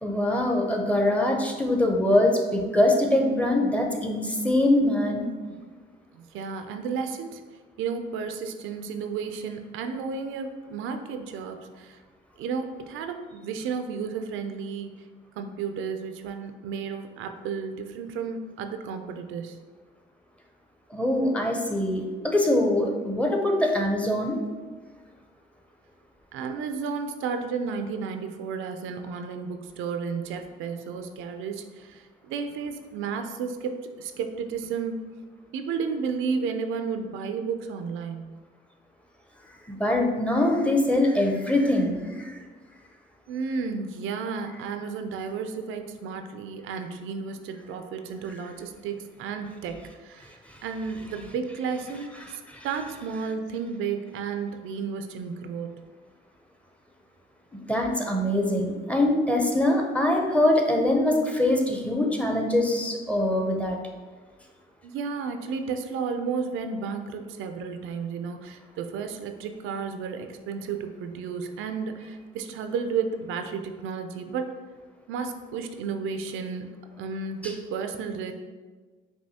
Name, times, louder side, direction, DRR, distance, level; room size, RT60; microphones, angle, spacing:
voice 1, 0.0-5.3 20.9-24.4 39.7-42.4 50.5-50.6 52.5-52.7 57.5-63.8, left 1 dB, 5° left, 1 dB, 0.6 m, -23 dB
voice 2, 6.1-7.4 7.8-12.0 12.4-14.9 15.4-19.6 26.3-35.0 35.5-38.4 43.3-55.8 64.8-74.6 75.1-76.7 77.0-78.3, right 5 dB, 85° right, 6 dB, 0.4 m, -32 dB
5.5 x 2.7 x 2.8 m, 1.4 s
cardioid pair, 90°, 20 cm